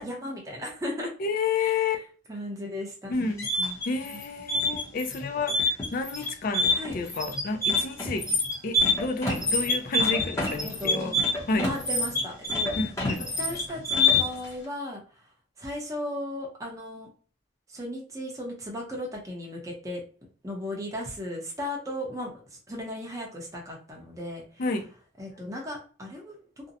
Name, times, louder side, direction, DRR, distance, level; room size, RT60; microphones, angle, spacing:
voice 1, 0.0-1.1 1.6-1.8 2.3-3.3 3.6-3.8 4.1-4.2 6.7-7.0 10.0-10.1 10.6-11.2 11.6-12.7 13.4-15.0 15.6-17.1 17.7-20.0 20.4-24.4 25.2-26.4, left 1 dB, 15° right, 0.6 m, -36 dB
voice 2, 1.2-2.0 3.1-3.5 3.8-8.3 8.6-11.1 11.5-11.7 12.8-13.2 24.6-24.9, left 4 dB, 45° left, 0.4 m, -30 dB
sound 1, 3.1-14.5, left 2 dB, 15° left, 0.8 m, -26 dB
2.5 x 2.1 x 2.7 m
head